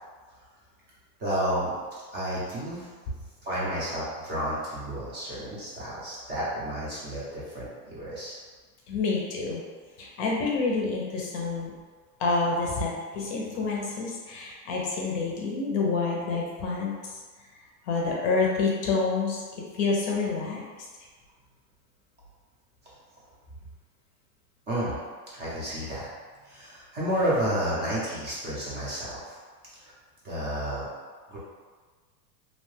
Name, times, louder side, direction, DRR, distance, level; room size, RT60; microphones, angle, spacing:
voice 1, 1.2-1.8 2.1-2.9 3.4-8.3 24.7-25.0 25.3-26.1 26.4-29.4 30.2-30.9 31.3-31.4, right 1 dB, 25° right, -8 dB, 0.5 m, -31 dB
voice 2, 8.9-9.6 10.0-11.7 12.2-17.2 17.8-20.6, left 4 dB, 45° left, -2 dB, 0.5 m, -28 dB
2.6 x 2.1 x 3.1 m, 1.5 s
supercardioid pair, 155°, 46 cm